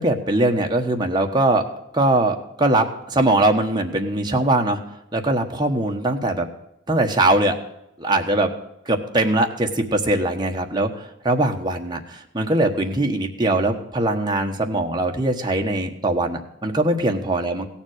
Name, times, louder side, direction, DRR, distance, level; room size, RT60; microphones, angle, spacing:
voice 1, 0.0-1.7 1.9-4.8 5.1-6.5 6.9-7.6 8.0-8.5 8.9-10.9 11.2-17.7, right 1 dB, 20° right, 2 dB, 1.2 m, -21 dB
16.5 x 7.3 x 6.5 m, 0.81 s
head